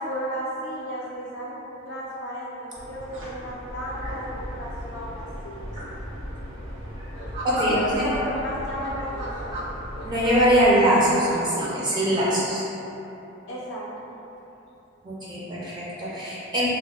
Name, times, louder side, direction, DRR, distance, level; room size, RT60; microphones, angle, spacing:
voice 1, 0.0-1.6 1.9-5.7 7.5-9.6 13.5-14.1, equal, 65° left, -6 dB, 0.4 m, -33 dB
sound 1, 2.7-10.7, equal, 80° right, 1.1 m, -37 dB
sound 2, 7.1-8.2 8.8-10.3 10.8-12.2, right 1 dB, 60° right, 0.7 m, -36 dB
voice 2, 7.4-8.1 10.0-12.6 15.0-16.7, equal, 25° right, -7 dB, 0.4 m, -22 dB
2.3 x 2.0 x 3.4 m, 2.9 s
head